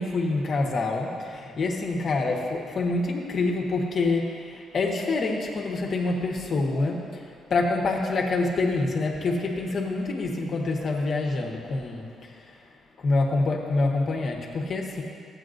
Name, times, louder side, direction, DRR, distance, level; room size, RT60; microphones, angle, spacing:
voice 1, 0.0-7.2 7.5-12.3 13.0-15.0, left 3 dB, 55° left, 1 dB, 1.2 m, -26 dB
13.5 x 8.5 x 2.6 m, 2.3 s
cardioid pair, 90°, 0 cm